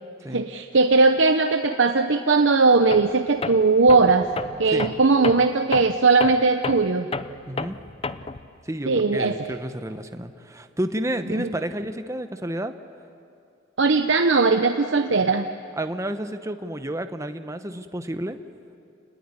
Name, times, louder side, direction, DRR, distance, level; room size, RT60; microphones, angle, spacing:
voice 1, 0.3-4.3 4.6-7.1 8.9-9.4 11.4-11.5 13.8-15.5, right 3 dB, 75° right, 6 dB, 0.9 m, -19 dB
Tools, 2.9-3.1 3.4-8.5, left 3 dB, 30° left, 0.6 m, -31 dB
voice 2, 7.5-7.8 8.6-12.8 15.8-18.4, right 1 dB, 15° right, 8 dB, 1.0 m, -30 dB
29.0 x 19.5 x 9.9 m, 2.6 s
head